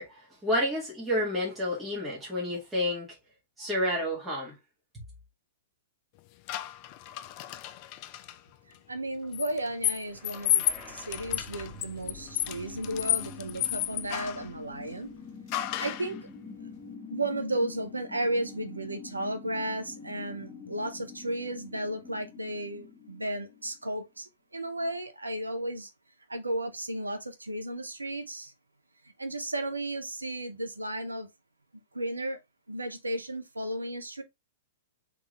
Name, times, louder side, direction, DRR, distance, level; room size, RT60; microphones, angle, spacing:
voice 1, 0.0-3.1 3.6-4.5, left 1 dB, 10° right, 1.9 m, -30 dB
sound 1, 6.5-8.3 9.3-14.5 15.5-16.1, left 13 dB, 40° left, 0.4 m, -32 dB
voice 2, 8.9-15.1 15.8-16.2 17.1-25.9 26.3-28.5 29.0-31.3 31.9-32.4 32.7-34.2, right 1 dB, 85° right, 0.9 m, -34 dB
sound 2, 10.0-24.0, left 4 dB, 15° left, 1.7 m, -46 dB
3.8 x 3.5 x 3.1 m
figure-of-eight pair, 105°, 0 cm